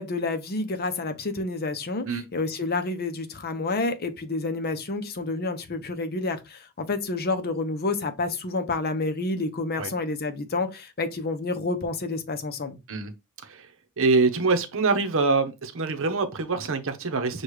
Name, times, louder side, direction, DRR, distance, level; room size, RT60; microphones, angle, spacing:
voice 1, 0.0-12.8, left 3 dB, 45° left, 0.7 m, -29 dB
voice 2, 14.0-17.4, right 3 dB, 60° right, 0.8 m, -24 dB
6.4 x 2.3 x 3.1 m
head